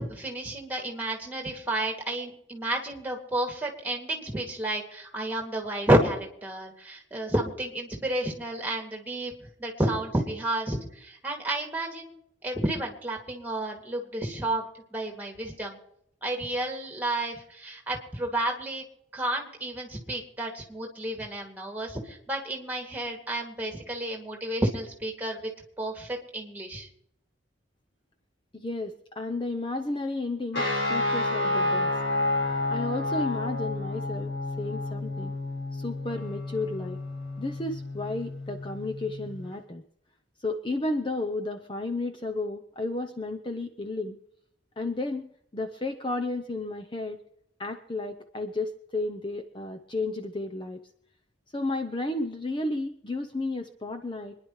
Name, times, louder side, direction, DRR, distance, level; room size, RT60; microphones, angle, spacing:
voice 1, 0.0-12.1 12.4-14.6 14.9-15.8 16.2-18.8 19.1-25.4 25.8-26.9, right 1 dB, 10° right, 2 dB, 2.5 m, -31 dB
voice 2, 28.5-32.0 32.7-34.3 34.6-35.3 35.7-37.0 37.4-39.8 40.4-44.2 44.8-47.2 47.6-50.8 51.5-54.4, left 2 dB, 25° left, 5 dB, 0.7 m, -32 dB
sound 1, 30.5-39.5, left 2 dB, 80° left, 5.8 m, -30 dB
26.0 x 10.5 x 3.2 m, 0.74 s
head